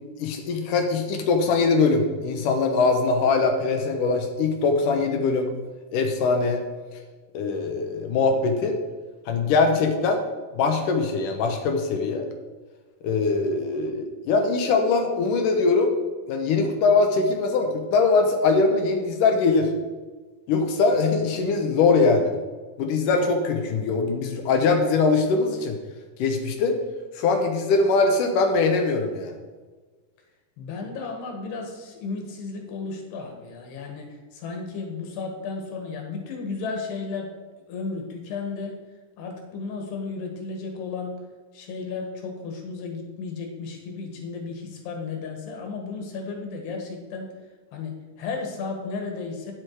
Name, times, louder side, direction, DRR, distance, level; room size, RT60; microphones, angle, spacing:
voice 1, 0.2-5.5 5.9-6.6 7.3-8.8 9.3-10.2 10.5-12.3 13.0-15.9 16.3-19.7 20.5-22.3 22.8-25.8 26.2-26.8 27.2-29.3, left 4 dB, 70° left, 4 dB, 2.2 m, -22 dB
voice 2, 30.6-37.3 37.7-38.8 39.2-41.2 41.5-47.3 47.7-49.5, left 4 dB, 90° left, 2 dB, 3.7 m, -34 dB
9.8 x 7.6 x 4.7 m, 1.4 s
omnidirectional pair, 4.6 m